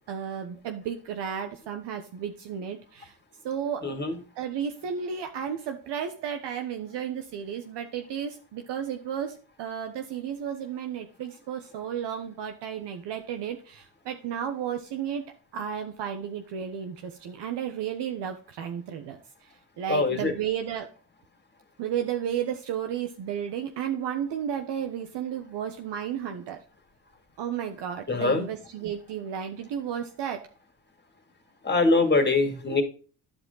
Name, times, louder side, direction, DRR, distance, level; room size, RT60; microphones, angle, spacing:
voice 1, 0.1-3.1 3.4-3.9 4.3-15.2 15.5-20.9 21.8-26.6 27.4-30.5, right 8 dB, 65° right, 5 dB, 1.2 m, -33 dB
voice 2, 3.8-4.1 19.9-20.3 28.1-28.4 31.6-32.8, left 3 dB, 25° left, 5 dB, 2.6 m, -23 dB
11.5 x 5.0 x 4.0 m, 0.38 s
supercardioid pair, 80°, 45 cm